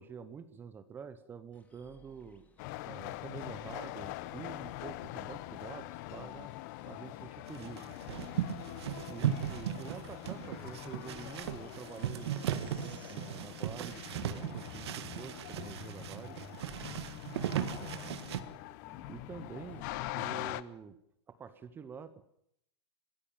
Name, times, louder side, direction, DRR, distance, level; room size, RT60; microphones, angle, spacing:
voice 1, 0.0-2.4 2.9-6.5 6.9-8.2 9.1-16.4 17.3-17.4 17.8-18.4 19.1-19.9 20.1-21.0 21.3-22.3, right 6 dB, 15° right, 13 dB, 1.0 m, -47 dB
sound 1, 1.5-13.8 14.1-20.1, left 2 dB, 10° left, 1.8 m, -57 dB
sound 2, 2.6-20.6, left 17 dB, 40° left, 0.8 m, -44 dB
sound 3, 7.5-18.4, right 11 dB, 65° right, 1.7 m, -37 dB
22.5 x 16.0 x 7.2 m, 0.73 s
supercardioid pair, 160°, 15 cm